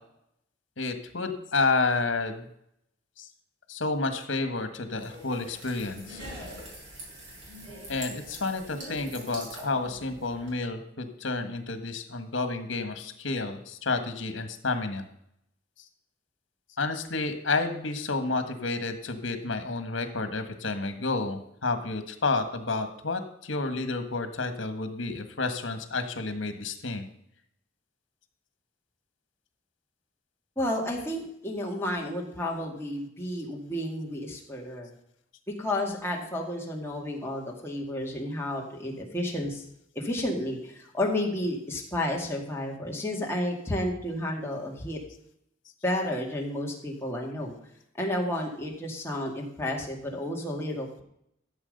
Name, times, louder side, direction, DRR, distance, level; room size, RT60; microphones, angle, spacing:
voice 1, 0.8-2.5 3.2-3.3 3.7-6.2 7.9-15.0 16.8-27.0, left 3 dB, 80° left, 8 dB, 1.5 m, -30 dB
sound 1, 4.9-10.5, equal, 75° right, 6.0 m, -43 dB
voice 2, 30.6-34.9 35.5-39.6 39.9-45.0 45.8-47.6 47.9-51.0, left 1 dB, 15° left, -1 dB, 2.2 m, -31 dB
14.5 x 7.3 x 5.4 m, 0.74 s
head